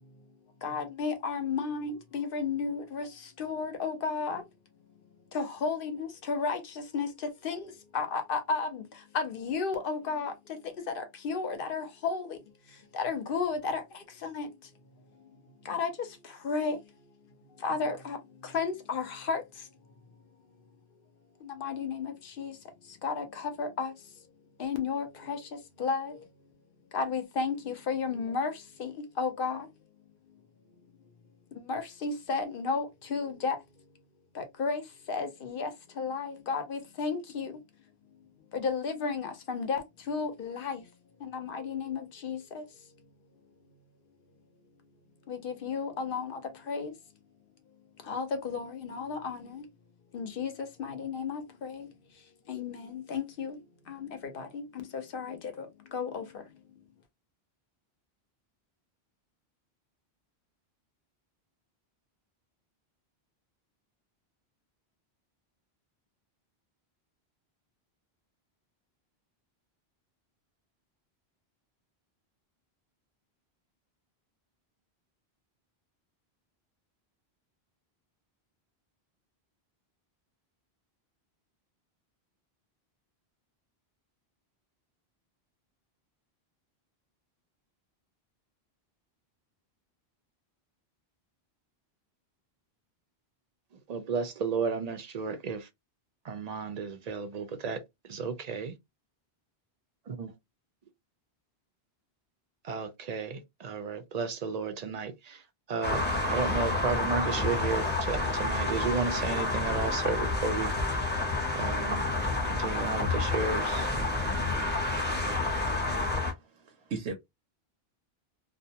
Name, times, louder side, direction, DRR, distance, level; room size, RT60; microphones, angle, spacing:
voice 1, 0.6-4.4 5.3-12.4 12.7-14.7 15.1-15.3 15.6-16.9 17.5-19.7 21.4-24.2 24.6-26.3 26.9-29.8 31.5-33.8 34.3-37.6 38.5-40.9 41.2-42.9 45.3-46.9 48.0-49.7 50.1-56.6, left 5 dB, 65° left, 0.8 m, -34 dB
voice 2, 93.9-95.7 96.2-97.8 98.1-98.7 100.1-100.3 102.6-105.4 105.7-106.0 106.3-110.7 111.5-112.1 112.5-113.9, right 5 dB, 55° right, 0.5 m, -33 dB
sound 1, 105.8-116.3, left 2 dB, 10° left, 0.6 m, -29 dB
voice 3, 116.0-117.1, right 4 dB, 90° right, 0.9 m, -39 dB
2.5 x 2.1 x 2.7 m
omnidirectional pair, 1.1 m